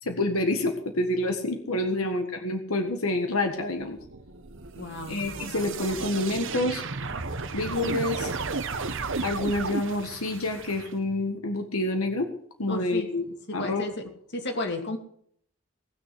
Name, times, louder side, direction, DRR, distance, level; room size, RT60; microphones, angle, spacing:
voice 1, 0.0-4.0 5.1-6.8 7.5-8.3 9.2-12.3 12.6-13.2 13.5-13.8, left 2 dB, 90° left, 5 dB, 1.7 m, -28 dB
sound 1, 3.8-10.9, right 4 dB, 65° right, 1.2 m, -34 dB
voice 2, 4.8-5.2 12.7-14.0 14.3-15.0, left 2 dB, 55° left, 5 dB, 2.7 m, -33 dB
19.5 x 6.6 x 7.9 m, 0.63 s
head